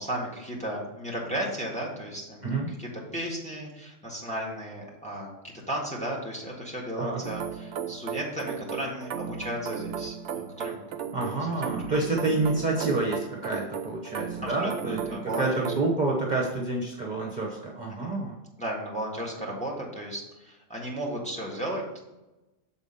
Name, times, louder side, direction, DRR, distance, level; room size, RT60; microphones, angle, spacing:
voice 1, 0.0-10.8 11.2-11.5 14.4-15.7 18.0-18.1 18.6-22.0, right 1 dB, 5° left, -2 dB, 1.7 m, -35 dB
sound 1, 7.2-15.9, right 7 dB, 70° right, 0.9 m, -35 dB
voice 2, 11.1-18.4, right 2 dB, 40° right, -2 dB, 1.2 m, -28 dB
7.0 x 4.3 x 5.5 m, 1.0 s
omnidirectional pair, 1.3 m